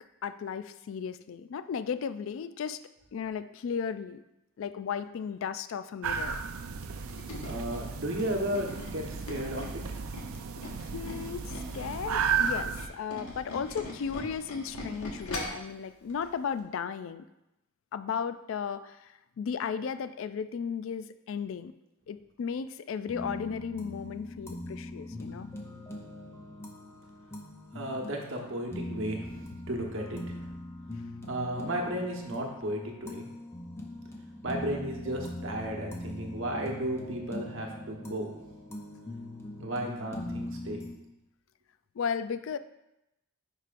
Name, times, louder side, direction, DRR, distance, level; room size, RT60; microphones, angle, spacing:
voice 1, 0.2-2.8 3.1-4.2 4.6-6.4 10.9-17.3 17.9-21.7 22.1-25.5 42.0-42.6, left 6 dB, 65° left, 12 dB, 0.3 m, -35 dB
sound 1, 6.0-12.9, right 6 dB, 80° right, 0.5 m, -34 dB
Tools, 6.8-11.8 12.2-15.7 16.1-16.3 16.6-16.7, left 2 dB, 90° left, 1.3 m, -41 dB
voice 2, 7.4-9.8 27.7-30.5 31.3-33.3 34.4-38.3 39.6-40.8, right 1 dB, 60° right, 1 dB, 1.1 m, -34 dB
sound 2, 23.1-40.9, left 1 dB, 10° left, 0.6 m, -41 dB
10.0 x 4.8 x 2.5 m, 0.90 s
head